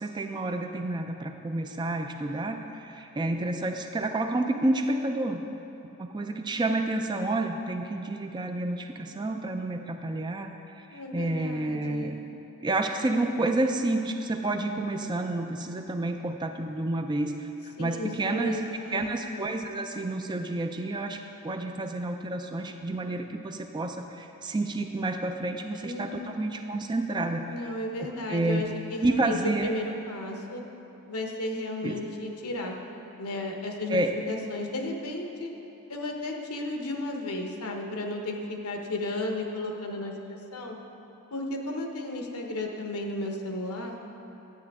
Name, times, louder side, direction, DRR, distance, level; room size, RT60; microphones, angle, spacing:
voice 1, 0.0-5.5 6.0-12.2 12.6-17.5 17.8-27.7 28.0-28.7 29.0-29.7 31.8-32.0 33.9-34.1, right 2 dB, 20° right, 5 dB, 0.4 m, -30 dB
voice 2, 10.9-12.2 17.8-19.5 25.8-26.4 27.5-30.6 31.1-32.8 33.2-35.5 35.9-40.8 41.3-44.0, left 1 dB, 75° left, 2 dB, 1.0 m, -34 dB
11.0 x 7.8 x 3.5 m, 3.0 s
head